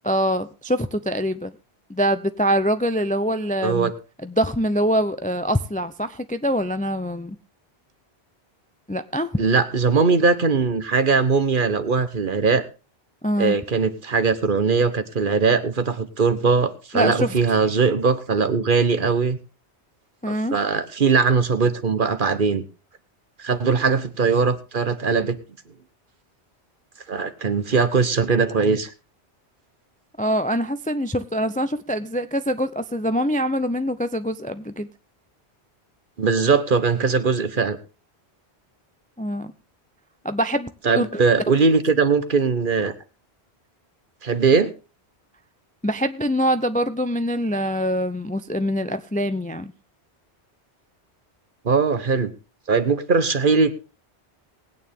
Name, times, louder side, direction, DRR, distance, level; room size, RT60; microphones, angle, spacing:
voice 1, 0.0-1.5 1.9-3.9 4.2-7.4 8.9-9.3 13.2-13.6 16.9-17.3 20.2-20.6 30.2-34.9 39.2-39.5 40.2-41.2 45.8-49.7, equal, 10° left, 11 dB, 0.4 m, -24 dB
voice 2, 3.6-3.9 9.4-12.6 13.4-19.4 20.3-22.6 23.4-25.4 27.1-28.9 36.2-37.8 40.8-42.9 44.2-44.7 51.6-52.3 52.7-53.7, right 4 dB, 50° right, 11 dB, 1.2 m, -20 dB
19.5 x 9.1 x 3.6 m, 0.32 s
omnidirectional pair, 1.1 m